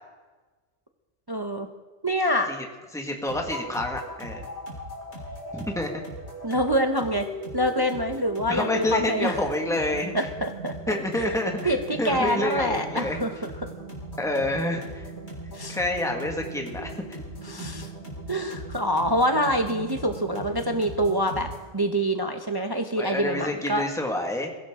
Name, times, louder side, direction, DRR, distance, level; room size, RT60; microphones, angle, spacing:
voice 1, 1.3-1.7 2.0-2.5 6.4-7.3 7.5-9.4 10.1-11.3 11.6-13.3 15.5-15.8 17.4-17.9 18.3-21.5 21.7-23.8, equal, 20° right, 5 dB, 0.8 m, -26 dB
voice 2, 2.9-4.5 5.5-6.0 8.5-10.3 10.9-13.2 14.2-15.1 15.7-16.9 23.0-24.5, left 1 dB, 5° left, 2 dB, 1.8 m, -28 dB
Drop Melody, 3.3-21.7, right 1 dB, 65° left, 4.2 m, -39 dB
22.5 x 16.0 x 3.7 m, 1.3 s
omnidirectional pair, 1.2 m